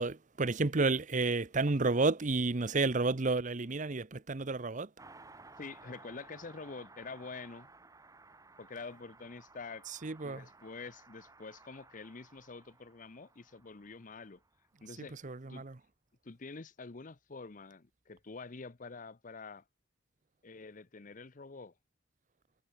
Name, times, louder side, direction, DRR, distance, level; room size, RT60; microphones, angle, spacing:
voice 1, 0.0-4.9 9.9-10.5 15.0-15.8, right 3 dB, 45° right, 0.9 m, -31 dB
Car passing by, 5.0-14.9 15.2-15.3, right 3 dB, 20° right, 1.3 m, -58 dB
voice 2, 5.6-7.7 8.6-9.9 10.2-14.4 14.8-15.1 15.5-15.7 16.2-19.6 20.4-21.7, left 4 dB, 45° left, 0.8 m, -47 dB
head